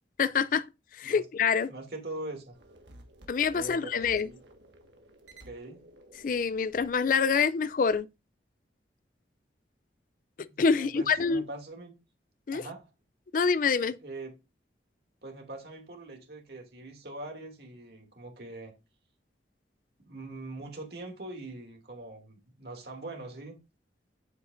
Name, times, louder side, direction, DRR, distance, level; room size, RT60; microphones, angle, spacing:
voice 1, 0.2-0.7 0.9-1.7 3.3-4.3 6.2-8.1 10.6-11.4 12.5-12.6 13.3-14.0, left 5 dB, 50° left, 0.4 m, -26 dB
voice 2, 1.7-2.6 3.5-4.4 5.4-5.8 10.5-12.0 12.5-12.9 14.0-14.3 15.2-18.7 20.1-23.6, right 2 dB, 60° right, 2.5 m, -42 dB
sound 1, 2.5-8.0, right 1 dB, 80° right, 1.6 m, -55 dB
8.2 x 7.9 x 2.5 m
head